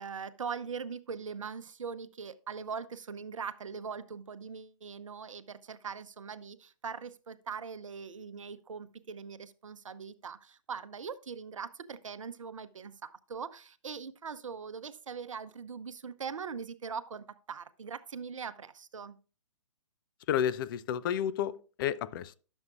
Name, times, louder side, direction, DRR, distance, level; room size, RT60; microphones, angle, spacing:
voice 1, 0.0-19.2, right 6 dB, 80° right, 0.7 m, -41 dB
voice 2, 20.3-22.4, left 9 dB, 45° left, 0.5 m, -31 dB
11.0 x 7.2 x 2.5 m
hypercardioid pair, 130°, 16 cm